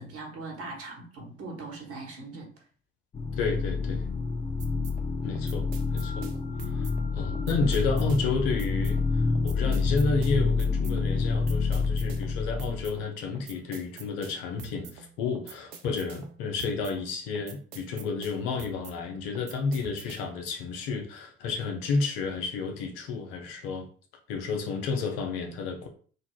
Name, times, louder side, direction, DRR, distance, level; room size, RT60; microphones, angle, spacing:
voice 1, 0.0-2.5, right 3 dB, 50° right, 0 dB, 1.3 m, -40 dB
sound 1, 3.1-13.0, left 4 dB, 20° left, 0.4 m, -28 dB
voice 2, 3.4-4.1 5.2-6.3 6.6-23.9 24.3-25.9, left 4 dB, 70° left, 3 dB, 0.7 m, -31 dB
sound 2, 4.6-20.5, right 7 dB, 75° right, 0.6 m, -47 dB
4.0 x 2.3 x 2.2 m, 0.43 s
hypercardioid pair, 55°, 31 cm